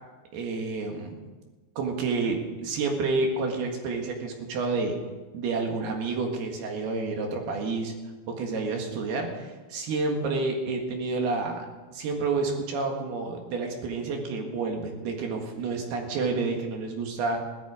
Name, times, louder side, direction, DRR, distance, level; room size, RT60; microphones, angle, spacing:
voice 1, 0.3-1.2 1.8-5.0 5.3-7.9 8.3-11.7 11.9-17.4, right 3 dB, 70° right, 2 dB, 3.7 m, -29 dB
17.5 x 12.5 x 5.0 m, 1.3 s
omnidirectional pair, 4.7 m